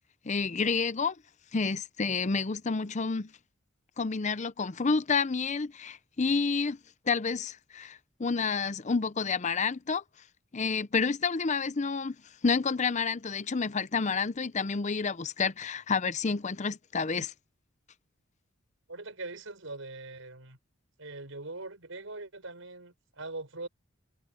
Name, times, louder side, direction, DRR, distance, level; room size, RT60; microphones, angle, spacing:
voice 1, 0.2-1.2 1.5-3.3 4.0-6.8 7.1-10.0 10.5-12.2 12.4-17.3, left 5 dB, 35° left, 0.6 m, -29 dB
voice 2, 18.9-20.6 21.0-23.7, right 2 dB, 85° right, 5.1 m, -42 dB
head